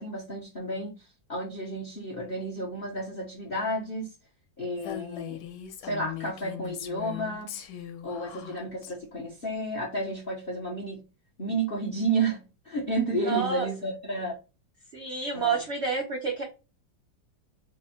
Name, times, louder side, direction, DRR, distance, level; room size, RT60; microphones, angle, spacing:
voice 1, 0.0-4.1 4.6-5.4 5.8-7.5 8.0-11.0 11.4-14.4 15.3-15.6, right 2 dB, 55° left, 0.6 m, -31 dB
Female speech woman speaking, 4.8-8.9, left 9 dB, 75° left, 1.3 m, -40 dB
voice 2, 13.3-13.7 14.9-16.4, right 5 dB, 85° right, 0.6 m, -29 dB
3.4 x 2.0 x 4.1 m
omnidirectional pair, 2.0 m